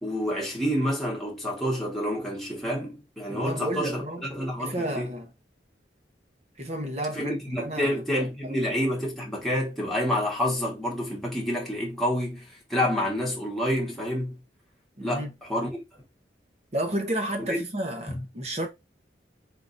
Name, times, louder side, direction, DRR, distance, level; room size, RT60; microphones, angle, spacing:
voice 1, 0.0-4.0 4.3-5.1 7.1-14.4 15.0-15.8 17.5-17.6 18.1-18.2, equal, ahead, 1.5 m, -28 dB
voice 2, 3.3-4.2 4.6-5.3 6.6-8.0 8.4-8.6 15.0-15.3 16.7-18.7, right 1 dB, 35° right, 1.0 m, -31 dB
3.7 x 3.7 x 2.6 m
head